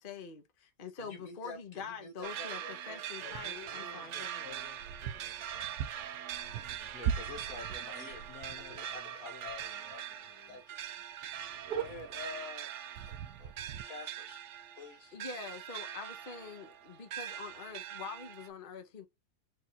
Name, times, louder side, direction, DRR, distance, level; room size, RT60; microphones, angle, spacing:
voice 1, 0.0-0.4 0.8-4.6 15.1-19.1, left 5 dB, 40° left, 1.0 m, -45 dB
voice 2, 1.0-3.0 6.9-8.3 8.7-10.0 10.5-10.8 11.7-12.7 13.0-13.5 13.9-14.4 14.8-15.1, left 4 dB, 60° left, 1.9 m, -47 dB
sound 1, 2.2-18.5, right 10 dB, 65° right, 0.7 m, -43 dB
voice 3, 3.2-5.8 6.3-6.9 8.3-10.6, left 6 dB, 80° left, 1.8 m, -54 dB
sound 2, 3.3-3.8 4.5-9.0 9.4-9.6 9.9-10.0 10.5-10.6 10.8-10.9 11.2-12.4 12.9-13.8, right 9 dB, 85° right, 1.1 m, -40 dB
4.8 x 3.5 x 2.8 m
omnidirectional pair, 1.7 m